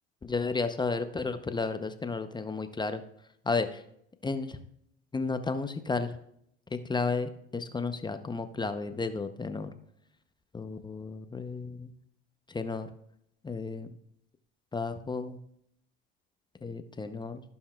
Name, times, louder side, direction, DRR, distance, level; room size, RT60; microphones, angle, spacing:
voice 1, 0.2-3.0 3.5-3.8 4.2-4.6 5.1-6.2 6.7-9.7 10.5-11.9 12.5-12.9 13.4-13.9 14.7-15.4 16.6-17.4, left 4 dB, 15° left, 9 dB, 0.6 m, -33 dB
16.0 x 5.5 x 2.3 m, 0.72 s
hypercardioid pair, 80°, 29 cm